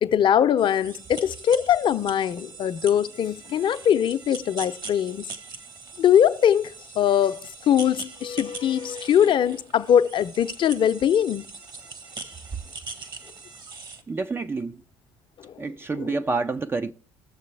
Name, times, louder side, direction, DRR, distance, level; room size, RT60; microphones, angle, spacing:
voice 1, 0.0-5.2 6.0-11.5 15.4-15.6 16.0-16.2, left 9 dB, 50° left, 0.6 m, -22 dB
sound 1, 0.6-14.0, right 4 dB, 45° right, 1.3 m, -41 dB
voice 2, 14.1-14.8 15.6-16.9, right 3 dB, 20° right, 0.4 m, -28 dB
18.0 x 6.7 x 3.3 m
hypercardioid pair, 65°, 11 cm